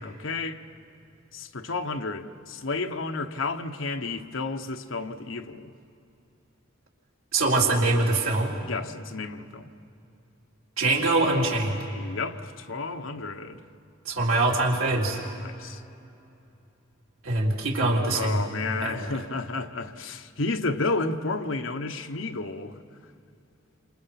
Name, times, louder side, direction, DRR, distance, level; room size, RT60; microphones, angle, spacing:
voice 1, 0.0-0.6 1.3-5.7 8.7-9.7 11.9-13.6 15.4-15.8 18.1-22.8, left 3 dB, 70° left, 1.1 m, -32 dB
voice 2, 7.3-8.5 10.8-11.8 14.1-15.2 17.2-18.4 18.8-19.0, right 2 dB, 90° right, 4.0 m, -23 dB
29.0 x 27.0 x 5.9 m
head